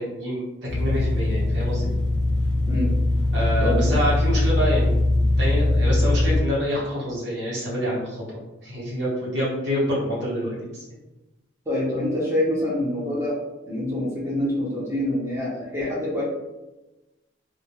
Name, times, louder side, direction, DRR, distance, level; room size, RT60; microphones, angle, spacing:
voice 1, 0.0-1.9 3.3-5.1 5.4-10.9, equal, 65° right, -7 dB, 1.1 m, -27 dB
sound 1, 0.7-6.4, left 2 dB, 60° left, 0.5 m, -21 dB
voice 2, 3.6-4.0 11.7-13.4 13.6-16.2, left 1 dB, 15° right, -5 dB, 0.6 m, -26 dB
2.2 x 2.2 x 2.9 m, 1.0 s
head